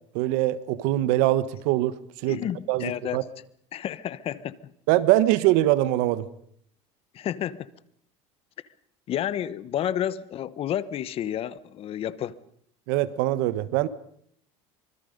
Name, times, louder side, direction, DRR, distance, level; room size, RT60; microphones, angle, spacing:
voice 1, 0.1-2.4 2.7-3.2 4.9-6.3 12.9-13.9, right 15 dB, 75° right, 1.4 m, -23 dB
voice 2, 2.3-3.2 3.7-4.7 7.1-7.7 9.1-12.4, left 10 dB, 45° left, 1.1 m, -30 dB
25.0 x 24.5 x 5.3 m
supercardioid pair, 125°, 14 cm